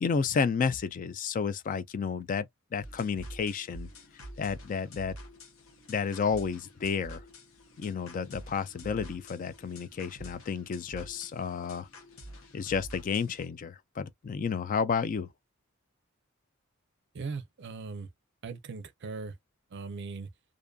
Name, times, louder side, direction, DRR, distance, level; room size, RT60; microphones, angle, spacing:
voice 1, 0.0-2.5 2.7-3.9 4.4-5.2 5.9-7.2 7.8-11.9 12.5-15.3, left 6 dB, 40° left, 0.3 m, -31 dB
sound 1, 2.8-13.5, equal, 75° left, 0.9 m, -48 dB
voice 2, 17.1-18.1 18.4-19.3 19.7-20.3, right 4 dB, 55° right, 0.5 m, -39 dB
2.5 x 2.5 x 2.2 m
head